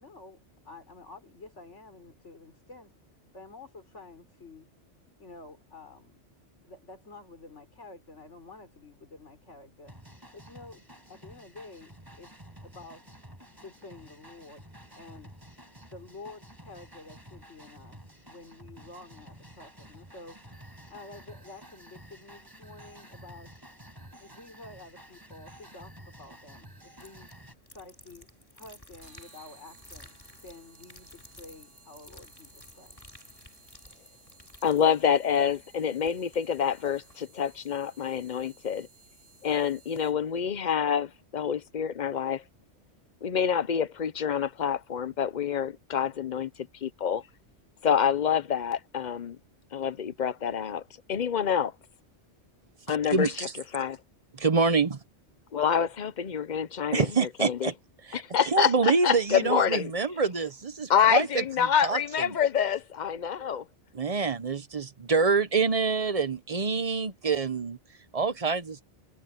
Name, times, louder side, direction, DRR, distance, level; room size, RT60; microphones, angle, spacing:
voice 1, 0.0-2.9 3.3-4.7 5.2-6.3 6.6-9.9 10.3-13.1 13.6-14.7 14.9-15.3 15.9-20.4 20.9-23.6 24.2-27.3 27.7-28.3 28.6-33.0, left 3 dB, 75° left, 4.9 m, -49 dB
sound 1, 9.9-27.5, equal, 15° right, 6.0 m, -51 dB
sound 2, 27.0-36.4 36.8-37.2, left 1 dB, 20° left, 2.8 m, -53 dB
sound 3, 29.0-40.4, right 3 dB, 85° right, 5.3 m, -58 dB
voice 2, 34.6-38.9 39.4-42.4 43.2-46.5 46.8-47.2 47.8-49.4 49.7-50.8 51.1-51.7 52.9-53.5 53.7-54.0 55.5-57.7 58.1-59.9 60.9-63.6, left 8 dB, 45° left, 0.8 m, -27 dB
voice 3, 54.3-55.0 56.9-57.7 58.1-62.4 63.9-67.8 68.1-68.8, right 4 dB, 35° right, 0.8 m, -26 dB
omnidirectional pair, 1.2 m